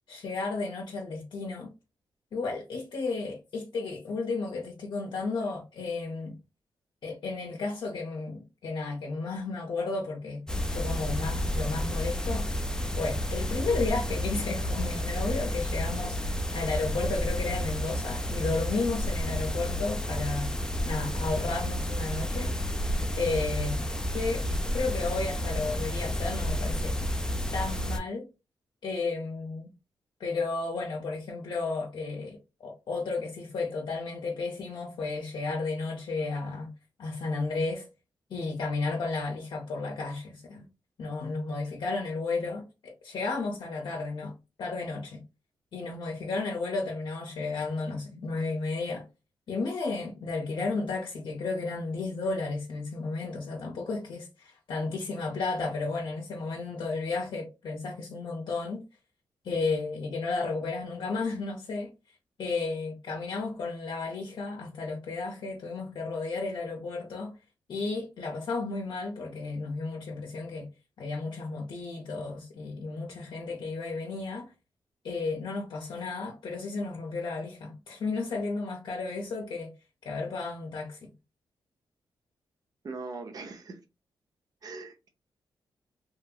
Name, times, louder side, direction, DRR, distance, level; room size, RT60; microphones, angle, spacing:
voice 1, 0.1-1.7 2.3-6.4 7.0-10.4 10.7-12.5 13.0-20.6 20.8-22.6 23.2-23.9 24.1-26.9 27.5-28.3 28.8-29.7 30.2-36.7 37.0-37.9 38.3-40.7 41.0-44.3 44.6-45.2 45.7-49.0 49.5-58.8 59.4-61.9 62.4-67.4 67.7-70.7 71.0-74.5 75.0-79.7 80.0-81.1, left 3 dB, 65° left, 0.6 m, -33 dB
sound 1, 10.5-28.0, equal, 10° left, 0.4 m, -31 dB
voice 2, 82.8-83.8 84.6-85.1, right 3 dB, 50° right, 0.6 m, -40 dB
2.9 x 2.6 x 2.3 m
cardioid pair, 110°, 9 cm